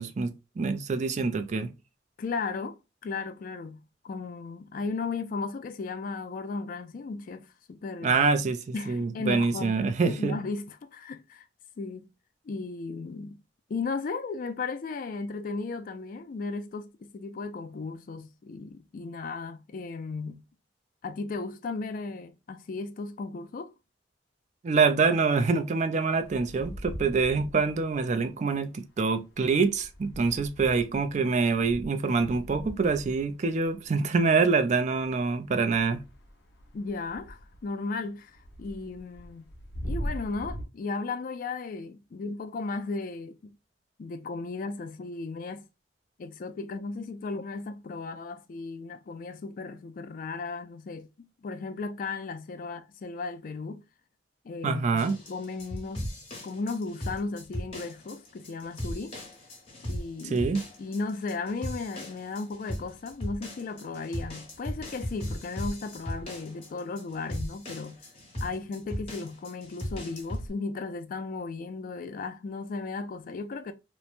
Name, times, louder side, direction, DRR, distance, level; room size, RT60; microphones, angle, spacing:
voice 1, 0.0-1.7 8.0-10.4 24.6-36.0 54.6-55.1 60.2-60.6, right 4 dB, 40° right, 0.4 m, -25 dB
voice 2, 2.2-2.8 3.0-8.1 8.7-11.5 11.8-12.1 12.4-13.4 13.7-20.4 21.0-23.7 36.7-39.5 39.8-43.5 44.0-45.6 46.2-53.8 54.4-56.1 56.4-59.2 59.8-60.5 60.8-68.0 68.4-73.7, left 4 dB, 50° left, 0.4 m, -35 dB
sound 1, 26.2-28.3 28.9-34.6 35.0-40.6, equal, 65° left, 0.8 m, -41 dB
sound 2, 55.0-70.5, equal, 35° left, 1.2 m, -38 dB
3.0 x 2.1 x 2.4 m
head